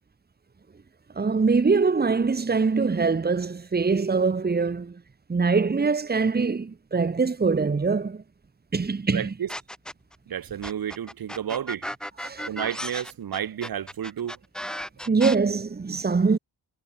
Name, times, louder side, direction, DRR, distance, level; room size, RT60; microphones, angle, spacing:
voice 1, 1.2-5.0 5.3-8.2 8.7-9.3 12.2-12.5 15.1-16.4, right 4 dB, 25° right, 2.1 m, -23 dB
voice 2, 9.1-9.5 10.3-11.9 12.5-15.1, right 9 dB, 55° right, 2.0 m, -32 dB
sound 1, 9.5-10.1 10.6-15.3, equal, ahead, 7.5 m, -35 dB
wide cardioid pair, 175°, 41 cm